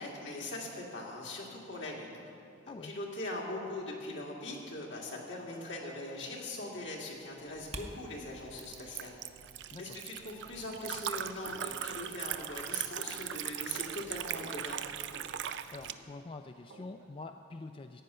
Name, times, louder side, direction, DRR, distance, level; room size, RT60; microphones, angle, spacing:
voice 1, 0.0-2.2 2.6-9.2 9.8-14.9, left 2 dB, 65° left, -2 dB, 2.2 m, -41 dB
sound 1, 7.4-12.9, right 2 dB, 35° right, 0.8 m, -53 dB
Liquid, 7.6-15.9, right 10 dB, 65° right, 0.4 m, -40 dB
voice 2, 9.7-10.0 15.7-18.0, left 3 dB, 30° left, 7 dB, 0.3 m, -46 dB
sound 2, 11.4-17.2, right 1 dB, 85° right, 1.1 m, -57 dB
14.5 x 9.0 x 5.6 m, 2.7 s
head